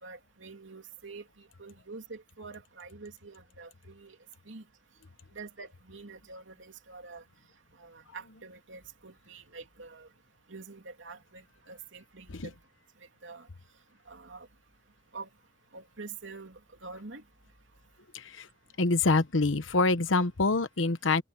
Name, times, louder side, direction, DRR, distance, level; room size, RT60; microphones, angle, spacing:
voice 1, 0.0-4.2 4.5-4.6 5.3-7.2 7.8-10.1 10.5-12.5 13.2-13.5 14.1-14.5 15.1-15.3 15.7-17.2, right 4 dB, 80° right, 3.0 m, -46 dB
voice 2, 18.1-18.5 18.8-21.2, left 3 dB, 85° left, 1.1 m, -26 dB
open air
head